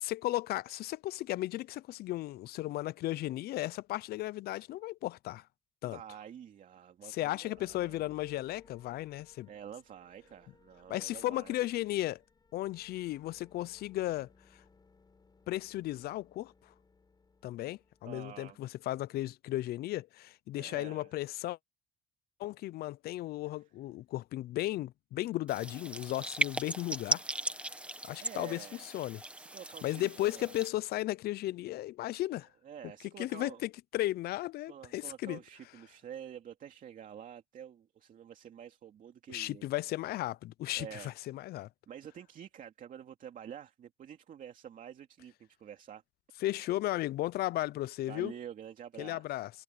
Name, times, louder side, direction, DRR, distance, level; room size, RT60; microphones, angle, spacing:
voice 1, 0.0-5.4 5.8-6.0 7.1-9.5 10.9-12.2 12.5-14.3 15.5-16.5 17.4-21.6 22.4-27.2 28.0-28.7 28.9-29.2 29.8-32.5 33.2-35.4 39.3-41.7 46.4-48.3 49.0-49.5, left 16 dB, 65° left, 0.5 m, -35 dB
voice 2, 5.8-8.1 9.5-11.6 18.0-18.6 20.5-21.1 23.4-23.6 28.2-28.9 29.4-30.5 32.6-33.6 34.7-39.7 40.7-41.1 41.9-46.0 48.1-49.5, right 9 dB, 50° right, 2.6 m, -48 dB
sound 1, 7.5-19.1, left 4 dB, 25° left, 7.1 m, -64 dB
sound 2, 25.5-30.7, right 1 dB, 5° right, 1.5 m, -37 dB
cardioid pair, 110°, 17 cm